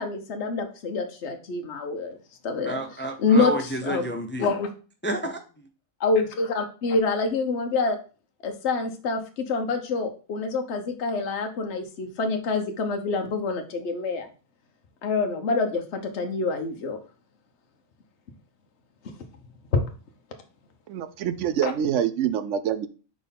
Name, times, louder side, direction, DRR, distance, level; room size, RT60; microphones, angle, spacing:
voice 1, 0.0-2.2 2.4-2.8 3.2-3.5 3.8-4.1 4.4-4.7 6.0-8.0 8.4-14.3 15.0-17.0 19.7-19.8 21.6-21.7, left 4 dB, 55° left, 5 dB, 1.2 m, -26 dB
voice 2, 2.6-4.5 5.0-5.4, right 1 dB, 15° left, 6 dB, 0.4 m, -30 dB
voice 3, 20.9-22.9, right 9 dB, 70° right, 13 dB, 0.9 m, -26 dB
4.9 x 4.4 x 5.3 m, 0.36 s
omnidirectional pair, 1.4 m